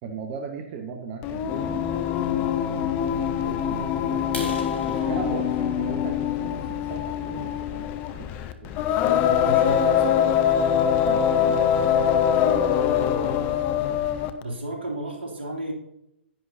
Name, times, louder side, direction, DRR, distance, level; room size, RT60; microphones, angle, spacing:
voice 1, 0.0-2.3 2.8-9.2 11.0-13.5, right 5 dB, 35° right, 4 dB, 0.9 m, -38 dB
Singing, 1.2-14.4, left 9 dB, 30° left, 0.7 m, -23 dB
sound 1, 4.2-8.0 8.5-8.7 9.2-9.3 9.7-9.9 10.2-10.3 10.7-10.8 11.0-11.5, left 1 dB, 75° left, 3.3 m, -40 dB
voice 2, 9.2-10.2 14.4-15.7, right 1 dB, 65° right, -1 dB, 2.5 m, -33 dB
10.5 x 9.7 x 2.7 m, 0.85 s
figure-of-eight pair, 120°, 6 cm